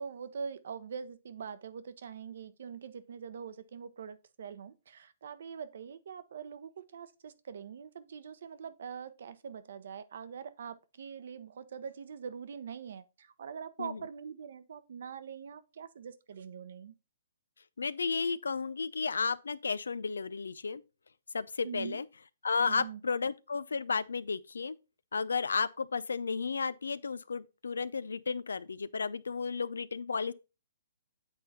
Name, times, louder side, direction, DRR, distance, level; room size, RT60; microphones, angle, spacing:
voice 1, 0.0-16.9 21.6-22.0 22.7-23.0, right 7 dB, 65° right, 0.8 m, -43 dB
voice 2, 17.8-20.8 21.3-22.1 22.4-24.8 25.1-30.3, left 5 dB, 85° left, 0.5 m, -33 dB
8.2 x 4.0 x 4.0 m
hypercardioid pair, 140°, 0 cm